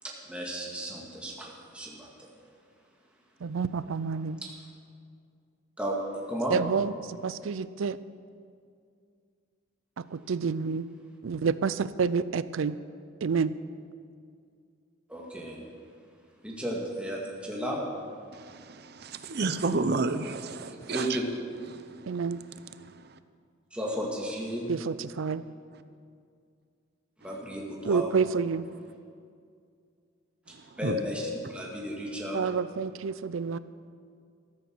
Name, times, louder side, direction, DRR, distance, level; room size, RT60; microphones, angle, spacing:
voice 1, 0.0-2.3 5.8-6.0 6.3-6.6 15.1-15.6 16.4-17.8 20.7-21.2 23.7-24.7 27.2-28.1 30.8-31.2 31.5-32.4, equal, 5° right, -3 dB, 2.0 m, -34 dB
voice 2, 3.4-4.4 6.5-8.0 10.0-10.9 11.2-12.8 13.2-13.6 22.0-22.4 24.7-25.4 27.8-28.7 32.3-33.6, right 5 dB, 90° right, 16 dB, 0.5 m, -29 dB
voice 3, 18.3-21.2 21.7-22.2 22.8-23.2 30.5-31.0, right 3 dB, 55° right, 11 dB, 0.7 m, -32 dB
13.5 x 13.5 x 4.6 m, 2.3 s
head